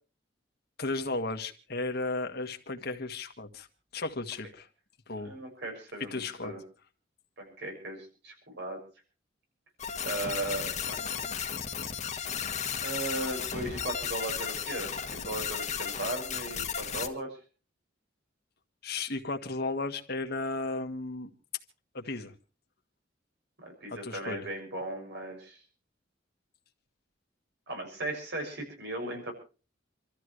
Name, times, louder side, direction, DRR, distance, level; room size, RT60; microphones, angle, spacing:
voice 1, 0.8-3.7 3.9-4.7 5.1-5.3 6.1-6.5 18.8-21.3 21.9-22.3 23.9-24.5, left 3 dB, 60° left, 5 dB, 1.9 m, -34 dB
voice 2, 5.2-6.6 7.4-8.8 10.0-11.0 12.8-17.4 23.6-25.6 27.7-29.3, right 2 dB, 65° right, 3 dB, 6.5 m, -37 dB
sound 1, 9.8-17.1, left 7 dB, 40° left, 1.7 m, -34 dB
28.0 x 13.5 x 3.2 m, 0.35 s
head